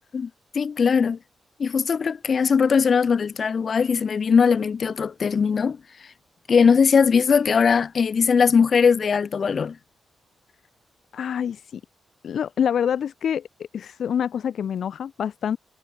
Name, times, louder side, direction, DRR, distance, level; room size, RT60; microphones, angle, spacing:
voice 1, 0.5-1.2 1.6-5.8 6.5-9.8, left 6 dB, 50° left, 7.6 m, -20 dB
voice 2, 11.1-11.8 12.2-15.6, left 8 dB, 70° left, 4.8 m, -26 dB
cardioid pair, 85°, 0 cm